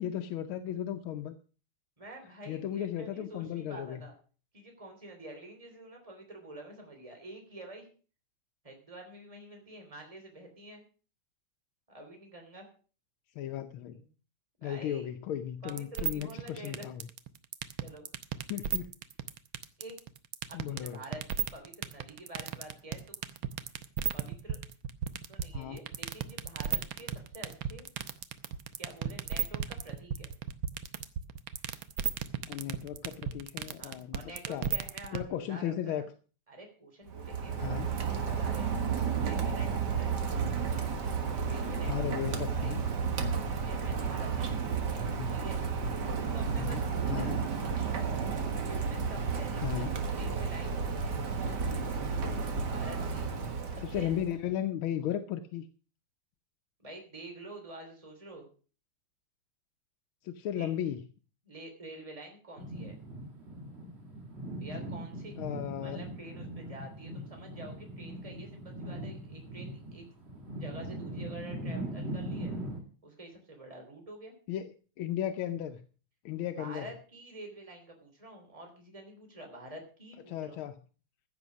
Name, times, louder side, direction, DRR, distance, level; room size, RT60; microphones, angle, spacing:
voice 1, 0.0-1.3 2.5-4.1 13.4-14.0 14.6-17.0 18.5-18.9 20.5-21.0 25.5-25.8 32.5-34.7 35.1-36.1 37.6-37.9 41.9-42.8 45.1-45.4 46.6-46.8 47.1-47.4 49.6-49.9 53.8-55.7 60.2-61.1 65.4-66.0 74.5-74.7 75.0-75.9 76.3-76.9 80.3-80.8, left 11 dB, 80° left, 7 dB, 1.6 m, -35 dB
voice 2, 2.0-4.1 4.5-7.9 8.6-10.8 11.9-12.7 13.9-14.1 14.6-15.1 15.6-16.9 17.8-18.0 19.8-20.0 20.5-23.2 24.1-24.6 25.3-27.9 28.8-30.3 33.8-36.1 36.5-37.8 38.4-38.7 39.2-40.1 41.4-42.1 42.5-42.7 43.6-45.6 46.3-47.6 48.6-50.8 51.4-51.9 52.6-53.3 53.8-54.1 56.8-58.5 60.5-60.7 61.4-63.0 64.6-65.4 65.8-70.0 70.5-72.5 73.0-74.3 76.6-80.6, right 1 dB, 15° right, 3 dB, 3.1 m, -48 dB
sound 1, 15.7-35.2, right 10 dB, 75° right, 1.6 m, -33 dB
Rain, 37.1-54.4, right 5 dB, 55° right, 2.1 m, -32 dB
sound 2, 62.6-72.8, right 1 dB, 30° right, 2.3 m, -40 dB
15.0 x 7.0 x 6.3 m, 0.39 s
omnidirectional pair, 2.3 m